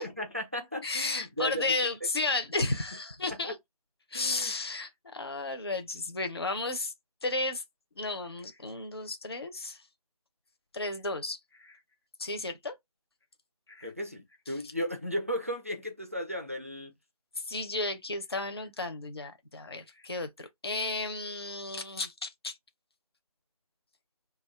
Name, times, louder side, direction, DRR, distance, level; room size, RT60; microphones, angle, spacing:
voice 1, 0.0-1.8 3.3-3.5 4.1-4.5 13.8-16.9, equal, 20° right, 0.5 m, -35 dB
voice 2, 0.8-3.6 4.1-6.9 7.2-7.6 8.0-9.8 10.7-11.8 12.2-12.8 13.7-13.9 17.4-22.6, left 2 dB, 40° left, 0.6 m, -33 dB
2.4 x 2.3 x 3.2 m
figure-of-eight pair, 170°, 20 cm